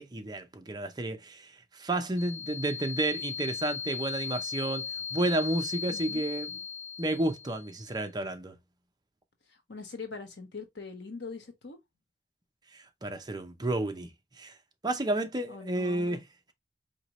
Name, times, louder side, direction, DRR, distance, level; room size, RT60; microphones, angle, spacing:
voice 1, 0.0-6.6 7.0-8.5 12.7-14.1 14.4-14.6 14.8-16.2, right 2 dB, 25° right, 0.6 m, -31 dB
sound 1, 2.2-7.8, left 6 dB, 40° left, 0.4 m, -38 dB
voice 2, 5.9-6.2 9.7-11.8 15.5-16.2, left 4 dB, 85° left, 1.2 m, -42 dB
4.5 x 2.9 x 3.0 m
head